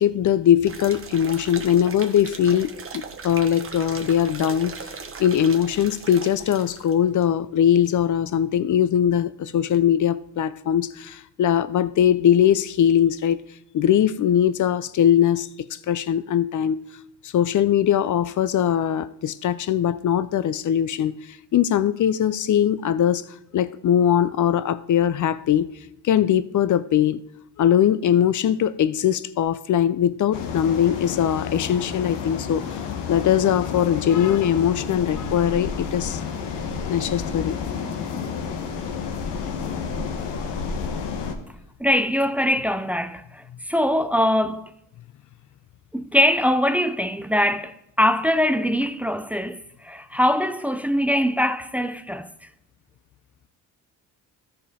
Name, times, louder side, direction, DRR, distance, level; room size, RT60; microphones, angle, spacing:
voice 1, 0.0-4.8 5.2-13.4 13.7-16.8 17.2-21.2 21.5-23.2 23.5-25.7 26.0-27.2 27.6-32.8 33.1-36.2 36.9-37.6, left 9 dB, 50° left, 0.5 m, -21 dB
sound 1, 0.6-6.9 7.2-7.3, right 5 dB, 30° right, 1.1 m, -38 dB
sound 2, 30.3-41.3, left 6 dB, 75° left, 1.1 m, -30 dB
voice 2, 41.8-44.7 45.9-52.3, equal, 5° right, 0.4 m, -22 dB
13.0 x 5.3 x 4.2 m
supercardioid pair, 60°, 41 cm